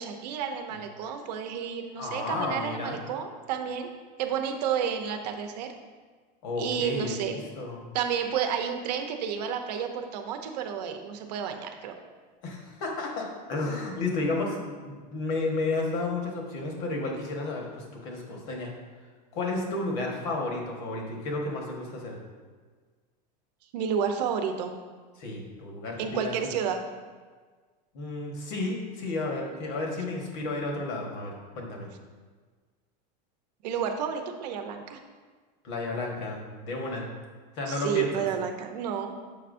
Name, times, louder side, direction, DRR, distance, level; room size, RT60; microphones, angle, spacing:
voice 1, 0.0-3.9 4.2-5.7 6.6-7.4 7.9-12.0 23.7-24.7 26.0-26.8 33.6-35.0 37.7-39.2, right 7 dB, 75° right, 5 dB, 0.8 m, -31 dB
voice 2, 2.0-3.0 6.4-7.8 12.4-14.6 14.8-18.7 19.3-22.2 25.2-26.5 27.9-31.9 35.6-37.1 37.6-38.2, left 2 dB, 50° left, 0 dB, 1.3 m, -32 dB
7.0 x 5.5 x 2.6 m, 1.5 s
supercardioid pair, 170°, 21 cm